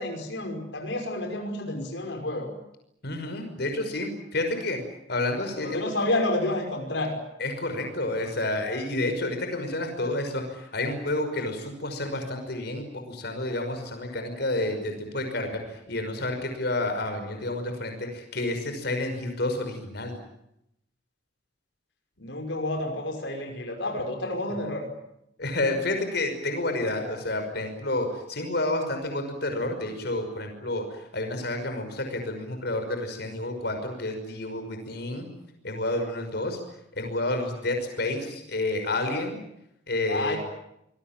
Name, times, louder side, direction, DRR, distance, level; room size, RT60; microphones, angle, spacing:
voice 1, 0.0-2.5 5.6-7.2 22.2-24.9 40.1-40.4, left 1 dB, 80° left, 3 dB, 5.7 m, -30 dB
voice 2, 3.0-4.8 5.1-5.8 7.4-20.2 25.4-35.3 35.6-36.6 37.0-39.4 39.9-40.4, left 2 dB, 65° left, 5 dB, 5.6 m, -30 dB
27.0 x 21.5 x 9.1 m, 0.80 s
head